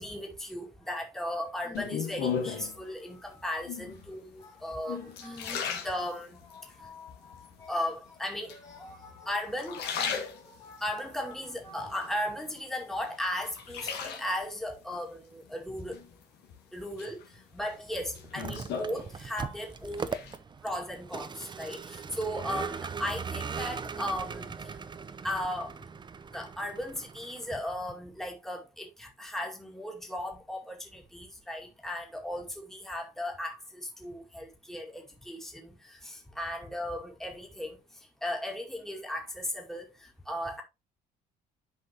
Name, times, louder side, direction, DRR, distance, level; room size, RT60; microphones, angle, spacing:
voice 1, 0.0-5.5 5.7-6.4 7.7-8.6 9.3-9.8 10.8-16.0 16.7-20.2 20.6-24.7 25.2-25.8 26.3-37.8 38.2-39.9 40.3-40.6, left 1 dB, ahead, 2.1 m, -36 dB
voice 2, 1.6-2.2 3.0-3.4 4.1-5.9 6.4-7.9 8.5-11.9, left 3 dB, 20° left, 2.1 m, -51 dB
sound 1, 1.7-2.8 3.6-4.1 4.6-6.6 7.1-7.7 8.5-9.2 9.5-10.8 11.3-12.5 12.9-14.6 15.9-16.5 17.0-19.6 19.8-20.4, left 6 dB, 85° left, 2.0 m, -36 dB
Vehicle, 18.2-27.6, right 5 dB, 25° right, 0.7 m, -39 dB
9.7 x 5.1 x 2.9 m
cardioid pair, 110°, 17 cm